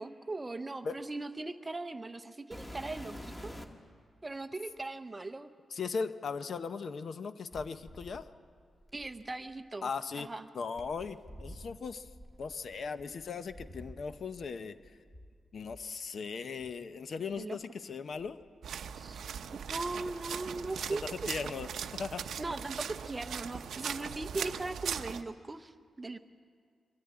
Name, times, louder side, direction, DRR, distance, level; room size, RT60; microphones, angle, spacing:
voice 1, 0.0-3.6 4.2-5.5 8.9-9.9 10.1-10.5 17.4-17.6 19.0-19.2 19.7-21.0 22.4-26.2, right 2 dB, 15° right, 10 dB, 0.6 m, -39 dB
sound 1, 2.5-3.9 4.8-4.9 7.5-9.6 10.8-14.5 14.8-15.8 16.6-16.7 17.3-17.4 18.1-19.2 19.5-20.0 21.3-21.4, equal, 10° left, 1.4 m, -49 dB
voice 2, 5.7-8.3 9.8-10.3 10.5-12.1 12.4-15.0 15.5-18.4 21.1-22.2, left 5 dB, 50° left, 11 dB, 0.7 m, -38 dB
sound 2, 18.6-25.2, right 7 dB, 75° right, 0.7 m, -39 dB
23.0 x 14.0 x 9.6 m, 2.1 s
wide cardioid pair, 175°, 0 cm